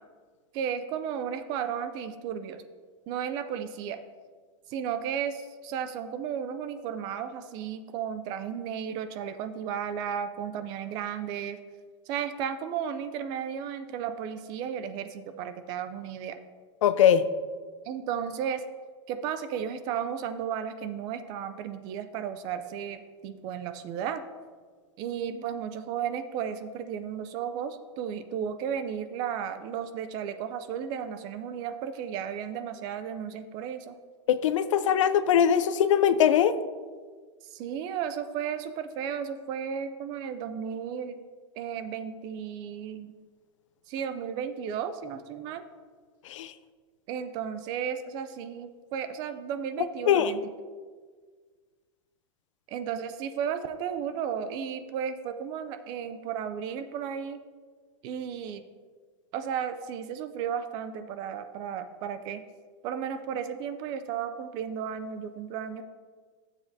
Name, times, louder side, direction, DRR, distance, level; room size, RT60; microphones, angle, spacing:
voice 1, 0.5-2.6 3.1-4.0 4.7-11.6 12.1-16.4 17.8-18.6 19.1-24.2 25.0-34.0 37.5-41.2 41.6-43.1 43.9-45.6 47.1-50.4 52.7-57.4 58.0-58.6 59.3-62.4 62.8-65.8, right 8 dB, 25° right, 10 dB, 0.4 m, -34 dB
voice 2, 16.8-17.2 34.3-36.5 46.3-46.5 50.1-50.3, left 9 dB, 80° left, 12 dB, 0.6 m, -21 dB
12.5 x 7.3 x 2.7 m, 1.5 s
supercardioid pair, 170°, 16 cm